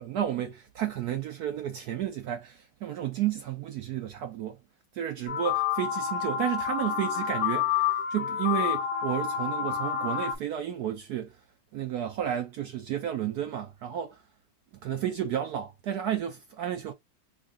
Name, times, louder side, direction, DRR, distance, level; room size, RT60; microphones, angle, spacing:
voice 1, 0.0-4.6 4.9-11.4 11.7-14.2 14.8-16.9, right 10 dB, 75° right, 0.9 m, -32 dB
sound 1, 5.3-10.4, left 8 dB, 60° left, 1.0 m, -29 dB
3.7 x 2.2 x 3.5 m
omnidirectional pair, 2.1 m